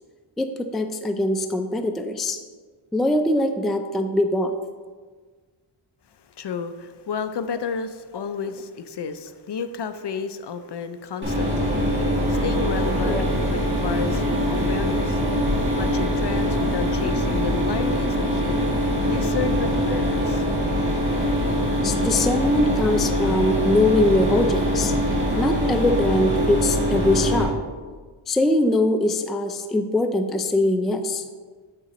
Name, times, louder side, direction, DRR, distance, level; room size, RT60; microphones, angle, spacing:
voice 1, 0.4-2.4 2.9-4.5 13.0-13.2 15.2-15.3 19.9-20.0 21.8-24.9 25.4-27.5 28.3-31.2, left 1 dB, ahead, 6 dB, 0.3 m, -22 dB
voice 2, 6.4-15.2 15.8-18.7 19.1-20.4, left 6 dB, 55° left, 10 dB, 0.5 m, -32 dB
Mechanisms, 11.2-27.4, equal, 20° right, 2.0 m, -23 dB
7.4 x 6.7 x 3.0 m, 1.5 s
wide cardioid pair, 95°, 50 cm